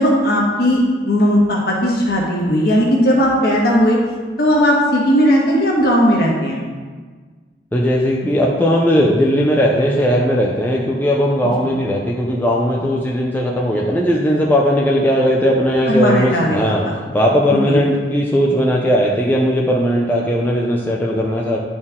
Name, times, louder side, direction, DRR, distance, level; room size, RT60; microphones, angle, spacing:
voice 1, 0.0-4.0 4.4-6.6 15.9-16.9 17.5-17.8, equal, 55° left, -3 dB, 1.6 m, -16 dB
voice 2, 7.7-16.8 17.1-21.6, equal, 10° left, -3 dB, 0.5 m, -17 dB
10.5 x 4.3 x 3.6 m, 1.5 s
head